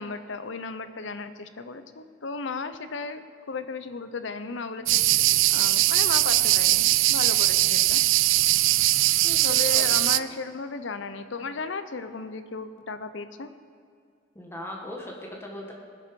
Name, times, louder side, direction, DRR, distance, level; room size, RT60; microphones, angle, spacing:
voice 1, 0.0-8.4 9.4-13.5, left 4 dB, 65° left, 11 dB, 0.7 m, -35 dB
sound 1, 4.9-10.2, right 17 dB, 70° right, 0.3 m, -21 dB
voice 2, 9.2-9.9 14.3-15.7, left 1 dB, 10° left, -2 dB, 1.5 m, -39 dB
19.5 x 6.8 x 5.3 m, 2.2 s
head